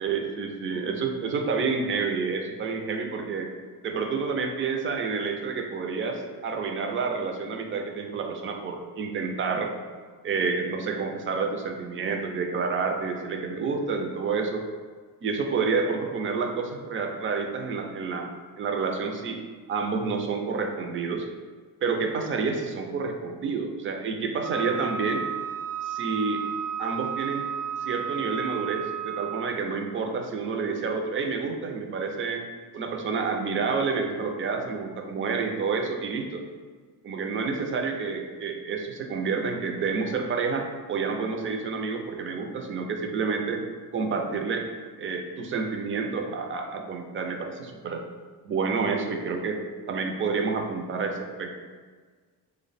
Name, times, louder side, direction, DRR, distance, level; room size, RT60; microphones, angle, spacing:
voice 1, 0.0-3.5 3.8-9.7 10.2-14.6 15.2-18.3 18.6-19.4 19.7-21.3 21.8-25.2 25.8-26.4 26.8-27.5 27.8-32.5 32.7-36.4 37.0-43.6 43.9-44.6 45.0-48.0 48.4-49.6 49.9-51.5, right 4 dB, 35° right, 3 dB, 0.4 m, -29 dB
Wind instrument woodwind instrument, 24.4-29.6, right 8 dB, 75° right, 1.0 m, -33 dB
3.2 x 2.1 x 3.9 m, 1.5 s
cardioid pair, 135°, 38 cm